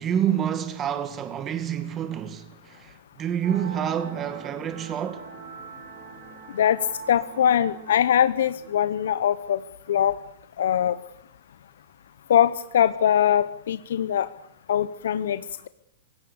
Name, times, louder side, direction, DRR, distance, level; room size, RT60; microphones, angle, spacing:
voice 1, 0.0-5.3, right 9 dB, 25° right, 2.1 m, -28 dB
sound 1, 3.4-8.8, right 5 dB, 45° right, 7.8 m, -42 dB
voice 2, 7.1-9.6 9.9-10.2 10.6-11.0 12.3-14.3 14.7-15.7, left 9 dB, 80° left, 0.9 m, -22 dB
27.0 x 17.0 x 7.0 m
hypercardioid pair, 140°, 0 cm